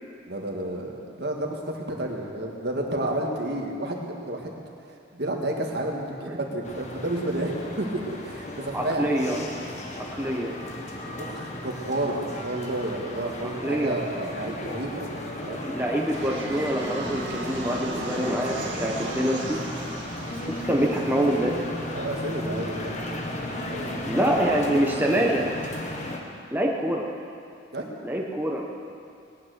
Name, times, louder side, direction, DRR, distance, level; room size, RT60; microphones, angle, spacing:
voice 1, 0.3-4.6 4.9-9.1 11.1-15.7 21.9-23.9 27.7-27.9, right 1 dB, 60° right, 0 dB, 1.8 m, -31 dB
sound 1, 6.6-26.2, left 1 dB, 40° left, 1.4 m, -35 dB
voice 2, 8.7-9.4 10.1-10.5 13.6-14.0 15.4-18.6 18.8-19.6 20.5-21.5 24.0-25.5 26.5-27.1 28.0-28.7, right 1 dB, 10° right, -2 dB, 1.0 m, -25 dB
Fixed-wing aircraft airplane, 16.1-25.2, right 2 dB, 85° right, 1.7 m, -38 dB
19.0 x 9.4 x 6.5 m, 2.5 s
head